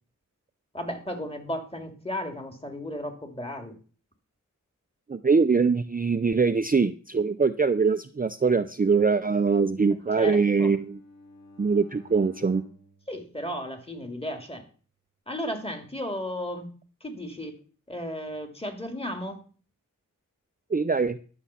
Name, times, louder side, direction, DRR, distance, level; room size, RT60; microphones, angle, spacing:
voice 1, 0.7-3.8 10.2-10.7 13.1-14.7 15.3-16.7 17.0-17.5 17.9-19.4, equal, 15° left, 5 dB, 2.2 m, -34 dB
voice 2, 5.1-11.0 11.6-12.6 20.7-21.2, right 5 dB, 25° right, 10 dB, 0.5 m, -23 dB
Bowed string instrument, 10.1-14.2, left 1 dB, 90° left, 5.4 m, -52 dB
11.5 x 7.1 x 5.7 m, 0.40 s
wide cardioid pair, 75°, 33 cm